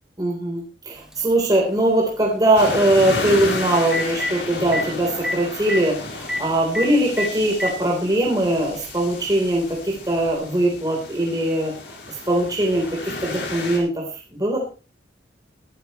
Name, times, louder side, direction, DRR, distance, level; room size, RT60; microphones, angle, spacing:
voice 1, 0.2-14.1 14.3-14.6, right 1 dB, 20° right, -1 dB, 3.9 m, -21 dB
Telephone, 1.1-1.2 3.4-3.5 3.8-4.3 4.7-4.8 5.2-5.3 5.6-5.8 6.3-6.4 6.7-6.9 7.2-7.7 8.7-8.8 10.3-10.4, left 1 dB, 5° right, 2.4 m, -25 dB
sound 1, 2.6-13.8, left 2 dB, 90° left, 4.8 m, -32 dB
22.0 x 11.5 x 3.2 m, 0.33 s
head